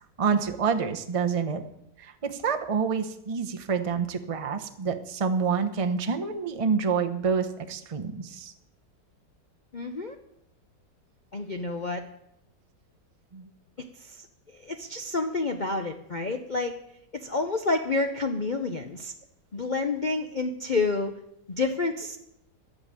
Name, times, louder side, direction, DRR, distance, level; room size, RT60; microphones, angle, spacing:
voice 1, 0.2-1.6 2.0-8.5 13.3-13.5, right 5 dB, 25° right, 8 dB, 0.7 m, -27 dB
voice 2, 9.7-10.1 11.3-12.0 13.8-16.7 17.1-19.1 19.5-21.2 21.5-22.2, left 3 dB, 50° left, 5 dB, 0.5 m, -29 dB
11.5 x 8.8 x 8.8 m, 0.80 s
omnidirectional pair, 1.9 m